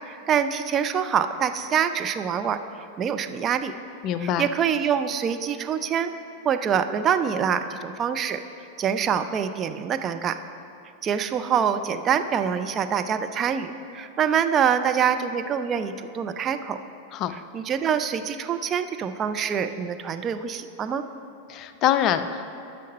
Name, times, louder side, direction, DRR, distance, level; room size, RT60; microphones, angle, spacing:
voice 1, 0.1-2.6 3.0-3.7 4.2-6.1 6.4-8.4 8.8-10.4 11.0-16.8 17.5-21.0, right 8 dB, 25° right, 8 dB, 0.4 m, -25 dB
voice 2, 4.0-4.5 17.1-17.4 21.5-22.5, left 10 dB, 35° left, 11 dB, 0.4 m, -24 dB
10.0 x 6.5 x 5.3 m, 2.8 s
figure-of-eight pair, 90°, 0 cm